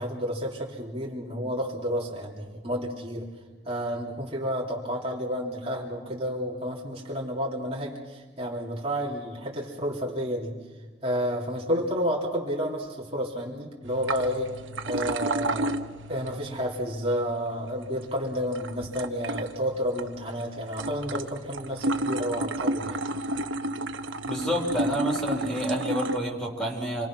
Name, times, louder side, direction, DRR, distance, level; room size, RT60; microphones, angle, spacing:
voice 1, 0.0-3.3 3.6-10.5 11.0-14.5 14.9-15.7 16.1-23.0, equal, 30° right, -3 dB, 3.0 m, -30 dB
sound 1, 13.8-26.2, right 1 dB, 75° right, 1.1 m, -33 dB
voice 2, 24.2-27.1, equal, 5° left, -1 dB, 3.6 m, -28 dB
27.5 x 22.0 x 6.1 m, 1.4 s
head